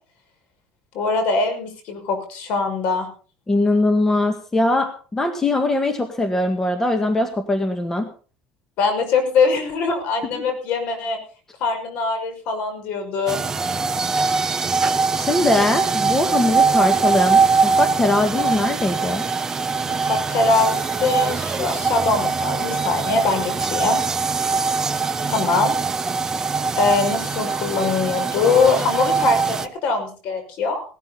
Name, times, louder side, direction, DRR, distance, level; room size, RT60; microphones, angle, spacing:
voice 1, 0.9-3.1 8.8-11.2 11.6-13.4 19.9-24.0 25.3-25.7 26.4-26.5 26.8-30.8, left 4 dB, 65° left, 7 dB, 5.6 m, -22 dB
voice 2, 3.5-8.1 10.3-10.4 15.2-19.2, left 2 dB, 15° left, 7 dB, 1.9 m, -21 dB
sound 1, 13.3-29.7, right 4 dB, 20° right, 0.9 m, -22 dB
18.5 x 12.5 x 4.0 m, 0.38 s
cardioid pair, 125°, 3 cm